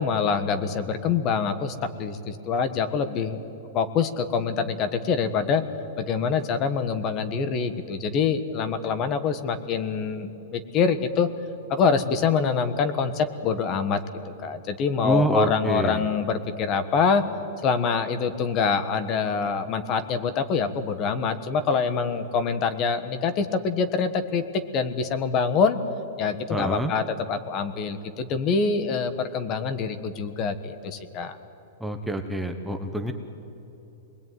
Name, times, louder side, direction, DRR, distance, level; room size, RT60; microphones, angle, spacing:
voice 1, 0.0-3.4 3.7-5.7 6.0-11.3 11.7-14.0 14.4-17.2 17.6-25.8 26.2-31.4, left 5 dB, 30° left, 11 dB, 1.4 m, -25 dB
voice 2, 15.0-16.1 26.5-26.9 31.8-33.1, right 1 dB, ahead, 4 dB, 1.1 m, -26 dB
26.5 x 21.0 x 9.4 m, 2.9 s
supercardioid pair, 160°, 0 cm